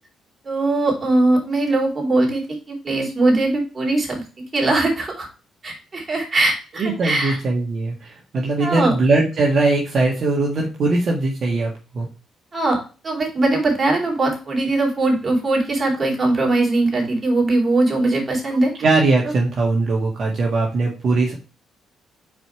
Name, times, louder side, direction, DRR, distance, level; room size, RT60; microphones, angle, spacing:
voice 1, 0.4-5.3 5.6-7.4 8.6-8.9 12.5-12.8 13.0-18.7, right 2 dB, 35° right, 0 dB, 3.2 m, -20 dB
voice 2, 6.8-12.1 18.8-21.3, right 3 dB, 55° right, -2 dB, 1.6 m, -20 dB
5.1 x 4.6 x 4.6 m, 0.33 s
supercardioid pair, 65°, 0 cm